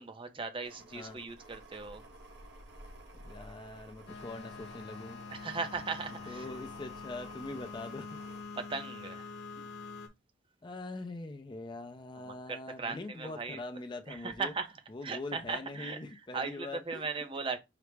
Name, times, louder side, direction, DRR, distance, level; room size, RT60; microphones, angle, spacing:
voice 1, 0.0-2.0 5.3-6.5 8.5-9.3 12.3-13.6 14.1-14.7 15.0-17.6, right 4 dB, 30° right, 0.5 m, -38 dB
sound 1, 0.6-8.4, right 1 dB, 70° right, 0.7 m, -54 dB
voice 2, 3.2-5.2 6.3-8.2 9.6-9.7 10.6-14.5 14.9-17.1, left 2 dB, 25° left, 0.4 m, -43 dB
sound 2, 4.1-10.1, left 4 dB, 85° left, 0.8 m, -45 dB
5.7 x 2.0 x 3.3 m
head